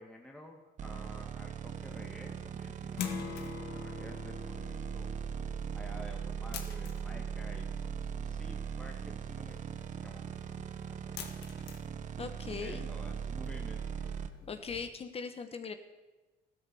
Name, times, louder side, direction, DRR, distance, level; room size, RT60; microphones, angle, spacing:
voice 1, 0.0-5.1 5.7-9.8 10.0-11.5 12.6-14.2, left 1 dB, 5° left, 0 dB, 2.0 m, -52 dB
sound 1, 0.8-14.3, right 7 dB, 45° right, 1.1 m, -39 dB
sound 2, 1.8-14.9, left 9 dB, 85° left, 1.8 m, -52 dB
Strum, 2.9-8.1, left 7 dB, 65° left, 3.3 m, -44 dB
voice 2, 12.2-12.9 14.5-15.7, left 5 dB, 35° left, 8 dB, 1.3 m, -40 dB
15.0 x 12.5 x 7.0 m, 1.2 s
cardioid pair, 110°, 17 cm